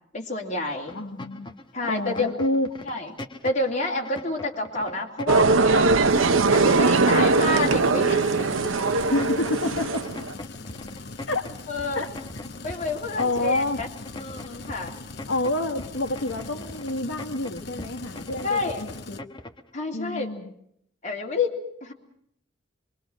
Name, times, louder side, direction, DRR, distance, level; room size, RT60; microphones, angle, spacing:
voice 1, 0.1-1.0 1.7-2.3 2.8-3.1 3.4-5.9 6.5-8.2 8.6-8.7 11.7-12.0 12.6-13.9 14.2-15.0 18.4-18.8 19.7-20.3 21.0-21.9, left 2 dB, 40° left, 0 dB, 3.3 m, -29 dB
voice 2, 0.9-1.5 1.9-2.7 9.1-10.1 11.3-11.5 11.9-12.1 13.1-13.8 15.3-19.2 19.9-20.5, left 2 dB, 80° left, 7 dB, 1.6 m, -28 dB
sound 1, 0.9-19.7, left 1 dB, 25° left, 1.4 m, -40 dB
sound 2, 5.3-10.3, right 3 dB, 90° right, 0.9 m, -20 dB
sound 3, 6.0-19.2, left 3 dB, 55° left, 1.0 m, -41 dB
25.0 x 23.5 x 6.4 m, 0.72 s
head